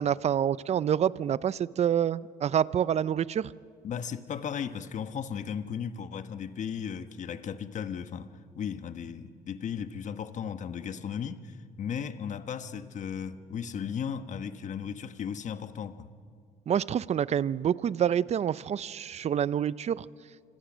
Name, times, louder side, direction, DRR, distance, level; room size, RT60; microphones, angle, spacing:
voice 1, 0.0-3.5 16.7-20.1, right 9 dB, 40° right, 0.5 m, -27 dB
voice 2, 3.8-16.1, left 7 dB, 45° left, 1.2 m, -36 dB
27.0 x 25.5 x 6.3 m
cardioid pair, 110°, 17 cm